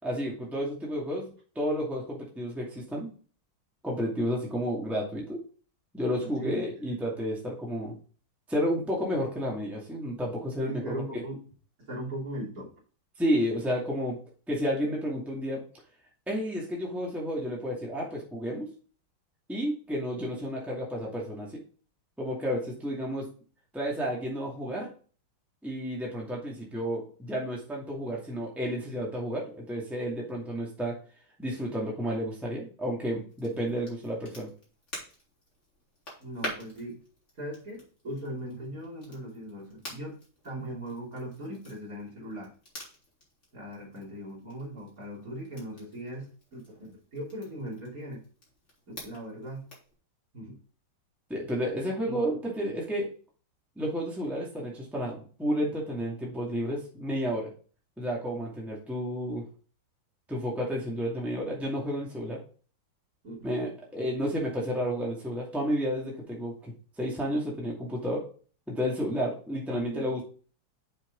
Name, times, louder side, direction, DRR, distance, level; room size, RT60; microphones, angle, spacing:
voice 1, 0.0-1.3 1.6-3.1 3.8-5.4 5.9-8.0 8.5-11.0 13.2-14.2 14.5-15.6 16.3-18.7 19.5-21.6 22.2-23.3 23.7-24.9 25.6-30.9 31.4-34.5 51.3-53.1 53.8-57.5 58.0-59.4 60.3-62.4 63.4-68.2 68.7-70.2, equal, ahead, -3 dB, 2.2 m, -31 dB
voice 2, 6.2-6.9 10.6-11.4 11.8-12.7 36.2-37.0 37.4-40.2 40.4-42.5 43.5-48.2 48.9-49.7 50.3-50.6 52.0-52.3 63.2-63.5 69.7-70.2, right 1 dB, 40° right, -4 dB, 3.7 m, -39 dB
Crackle, 33.3-49.9, left 1 dB, 35° left, 3.9 m, -47 dB
7.4 x 6.3 x 3.9 m, 0.40 s
omnidirectional pair, 2.2 m